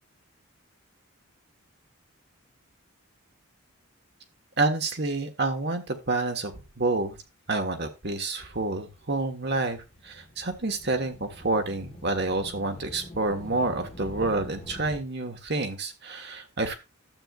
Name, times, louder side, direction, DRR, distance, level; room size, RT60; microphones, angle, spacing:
voice 1, 4.6-7.2 7.5-16.8, right 2 dB, 50° right, 6 dB, 1.4 m, -28 dB
sound 1, 8.5-15.0, left 1 dB, 25° left, 1.4 m, -45 dB
12.5 x 7.9 x 2.4 m, 0.25 s
head